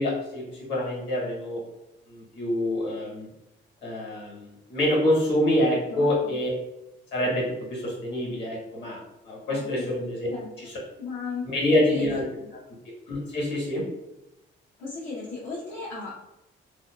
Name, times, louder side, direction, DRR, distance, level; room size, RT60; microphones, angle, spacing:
voice 1, 0.0-1.6 2.1-3.3 3.8-6.5 7.1-7.4 7.7-9.0 9.3-10.3 10.6-10.7 11.5-12.2 13.1-13.8, left 1 dB, 60° left, -4 dB, 1.3 m, -26 dB
voice 2, 5.9-6.4 9.5-9.9 10.3-10.5 11.0-11.6 11.9-12.5 14.8-16.2, left 3 dB, 75° left, -8 dB, 0.8 m, -36 dB
2.7 x 2.2 x 2.3 m, 0.92 s
cardioid pair, 90°, 20 cm